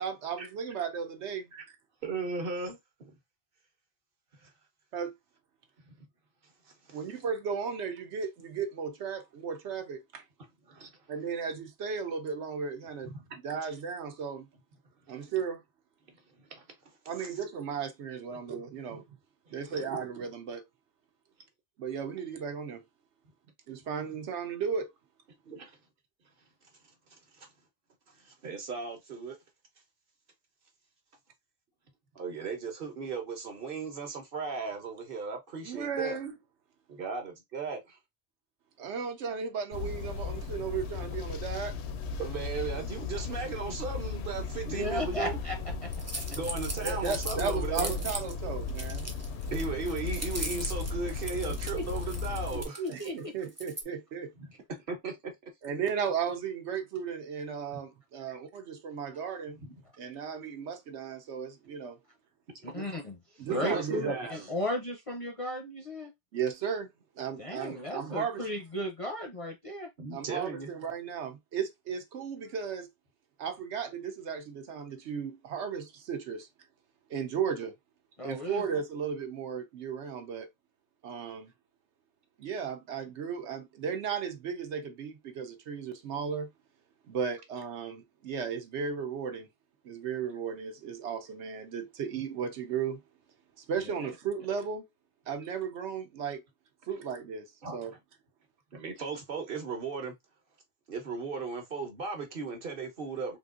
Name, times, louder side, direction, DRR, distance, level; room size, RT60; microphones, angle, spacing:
voice 1, 0.0-1.5 4.9-5.1 6.9-10.2 11.1-13.1 13.4-14.5 15.1-15.6 17.1-19.0 19.5-20.6 21.8-22.8 23.7-24.9 35.6-36.3 38.8-41.7 46.8-49.1 52.9-54.3 55.6-59.6 60.0-62.0 62.8-62.9 63.4-64.2 66.3-66.9 67.2-68.4 70.1-72.9 73.4-76.5 77.1-77.7 78.2-80.5 81.0-81.5 82.4-86.5 87.1-89.5 89.8-93.0 93.6-94.9 95.3-96.4 96.9-97.5 97.7-97.9, right 6 dB, 75° right, 1.0 m, -35 dB
voice 2, 2.0-3.1 4.4-4.5 5.8-5.9 6.9-7.0 10.7-10.9 13.1-13.4 15.1-15.2 16.4-16.6 17.2-17.3 18.3-18.4 19.5-19.8 25.5-25.7 27.1-27.5 28.2-29.4 32.1-36.2 36.9-38.0 42.2-45.4 46.3-47.9 49.5-52.8 54.9-55.5 57.7-57.8 58.3-58.4 59.5-59.7 62.5-62.7 63.5-64.5 70.0-70.7 97.6-98.0 98.7-100.1 100.9-103.4, right 4 dB, 55° right, 1.1 m, -37 dB
sound 1, 39.7-52.6, left 4 dB, 70° left, 0.8 m, -36 dB
voice 3, 44.6-46.2 47.8-47.9 51.8-51.9 52.8-53.3 62.6-66.1 67.4-69.9 78.2-78.6 94.0-94.1, left 1 dB, 35° left, 0.6 m, -35 dB
sound 2, 45.9-48.3 48.7-53.1 53.5-53.8, right 1 dB, 15° right, 0.6 m, -39 dB
3.7 x 2.6 x 2.4 m
omnidirectional pair, 1.2 m